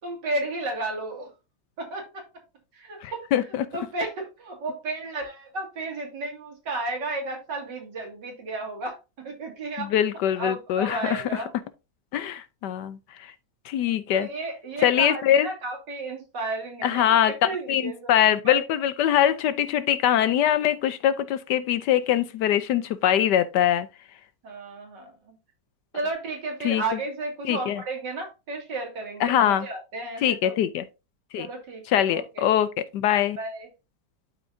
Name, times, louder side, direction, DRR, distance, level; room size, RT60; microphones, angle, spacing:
voice 1, 0.0-1.3 1.8-2.3 2.7-3.2 3.7-9.9 10.4-11.5 14.1-18.6 24.4-25.3 25.9-30.5 31.4-32.5 33.4-33.7, right 2 dB, 70° right, 2.9 m, -33 dB
voice 2, 3.0-3.7 9.9-11.2 12.1-13.0 13.7-14.3 14.8-15.5 16.8-17.3 17.7-23.9 26.6-26.8 27.4-27.8 29.2-29.7 30.2-30.8 31.3-31.5 31.9-33.4, left 10 dB, 70° left, 1.1 m, -23 dB
12.0 x 4.5 x 2.6 m
omnidirectional pair, 2.0 m